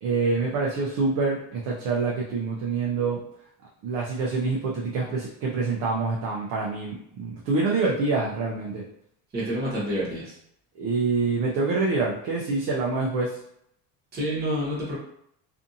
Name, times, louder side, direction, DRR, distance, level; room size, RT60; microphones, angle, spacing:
voice 1, 0.0-3.2 3.8-8.8 10.8-13.4, right 4 dB, 45° right, -3 dB, 0.5 m, -26 dB
voice 2, 9.3-10.3 14.1-14.9, equal, 20° right, -6 dB, 1.0 m, -28 dB
2.5 x 2.5 x 2.6 m, 0.72 s
cardioid pair, 150°, 44 cm